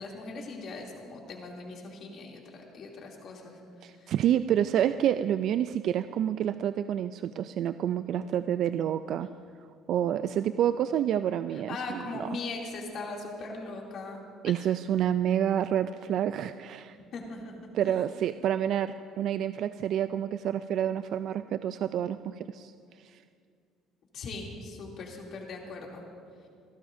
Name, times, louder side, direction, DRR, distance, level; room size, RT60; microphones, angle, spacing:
voice 1, 0.0-3.6 4.0-4.1 11.5-14.2 17.1-17.5 17.8-17.9 24.1-26.0, left 3 dB, 55° left, -1 dB, 2.8 m, -40 dB
voice 2, 3.8-9.3 9.9-12.3 14.4-17.0 17.7-22.7 23.1-23.2, right 10 dB, 60° right, 11 dB, 0.3 m, -28 dB
29.5 x 12.0 x 2.7 m, 2.3 s
cardioid pair, 105°, 0 cm